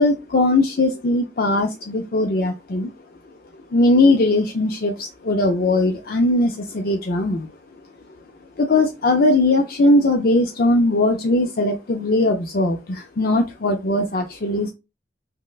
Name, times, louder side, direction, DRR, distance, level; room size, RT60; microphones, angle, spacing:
voice 1, 0.0-2.9 3.7-7.5 8.6-14.7, left 2 dB, 50° left, 3 dB, 0.5 m, -19 dB
5.3 x 2.1 x 2.3 m, 0.25 s
head